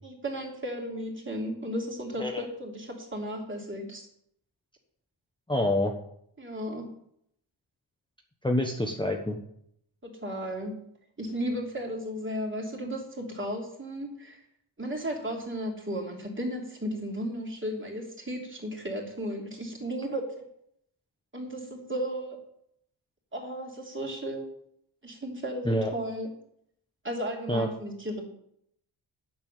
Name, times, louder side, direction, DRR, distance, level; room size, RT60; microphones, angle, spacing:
voice 1, 0.0-4.1 6.4-6.9 10.0-10.8 11.2-14.4 14.8-20.4 21.3-22.4 23.3-24.5 25.0-26.3 27.0-28.2, equal, 25° right, 0 dB, 3.2 m, -34 dB
voice 2, 5.5-5.9 8.4-9.4 25.6-25.9 27.5-27.7, left 1 dB, 10° left, 2 dB, 1.2 m, -26 dB
9.5 x 7.1 x 8.9 m, 0.70 s
wide cardioid pair, 125°, 48 cm